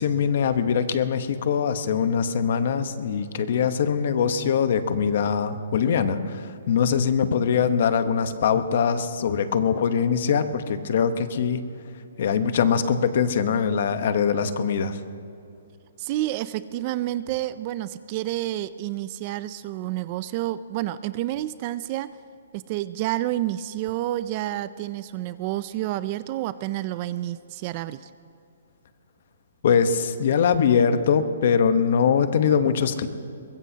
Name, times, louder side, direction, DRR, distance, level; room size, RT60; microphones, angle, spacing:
voice 1, 0.0-11.7 12.2-15.0 29.6-33.1, left 7 dB, 45° left, 10 dB, 1.0 m, -22 dB
voice 2, 16.0-22.2 22.5-28.1, right 14 dB, 25° right, 15 dB, 0.3 m, -29 dB
23.0 x 21.0 x 2.8 m, 2.6 s
hypercardioid pair, 170°, 0 cm